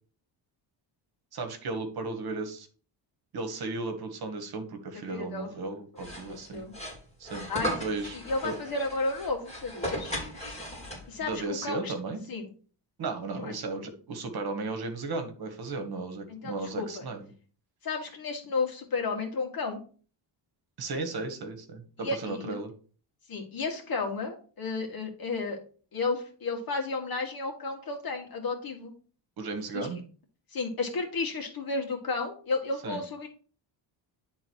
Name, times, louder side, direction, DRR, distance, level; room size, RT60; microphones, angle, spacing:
voice 1, 1.3-2.7 3.3-6.6 7.2-8.2 8.4-8.5 11.2-12.3 13.0-17.2 20.8-22.7 29.4-30.0 32.8-33.0, right 3 dB, 55° right, 7 dB, 1.5 m, -35 dB
voice 2, 5.1-5.5 6.3-6.7 7.5-7.8 8.1-10.1 11.1-11.9 12.3-12.5 13.4-13.5 16.3-17.0 17.8-19.8 22.0-22.5 23.3-25.6 25.9-28.9 29.7-29.9 30.5-33.3, left 3 dB, 50° left, 2 dB, 2.1 m, -32 dB
sound 1, 6.0-11.3, equal, 15° left, 3.7 m, -37 dB
10.5 x 3.8 x 4.6 m, 0.40 s
cardioid pair, 145°, 45 cm